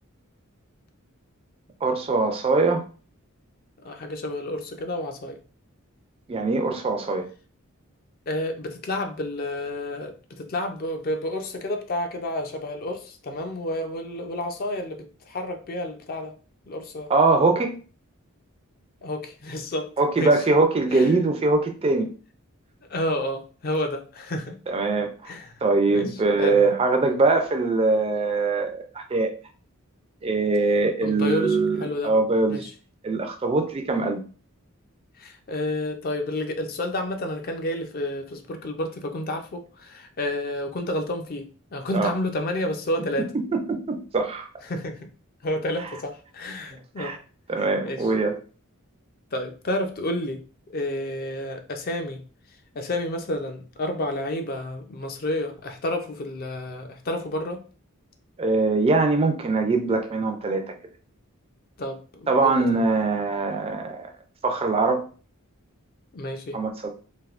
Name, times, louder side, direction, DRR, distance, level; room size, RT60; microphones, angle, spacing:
voice 1, 1.8-2.8 6.3-7.3 17.1-17.8 20.0-22.1 24.7-25.1 25.6-28.9 29.1-29.3 30.2-31.8 32.0-32.6 33.0-34.2 41.9-42.1 43.2-44.5 47.0-47.2 47.5-48.3 58.4-60.7 62.3-64.1 64.4-65.0 66.5-66.9, right 3 dB, 25° right, 5 dB, 0.3 m, -22 dB
voice 2, 3.8-5.4 8.3-16.3 16.7-17.1 19.0-19.9 20.2-20.4 20.9-21.2 22.9-24.6 25.2-25.5 25.9-26.6 31.0-32.1 32.5-32.7 35.2-43.3 44.6-45.1 45.4-47.1 47.6-48.1 49.3-50.4 50.7-52.2 52.7-57.6 61.8-62.8 66.1-66.6, left 1 dB, 45° left, 5 dB, 0.5 m, -30 dB
3.4 x 2.6 x 2.4 m, 0.39 s
head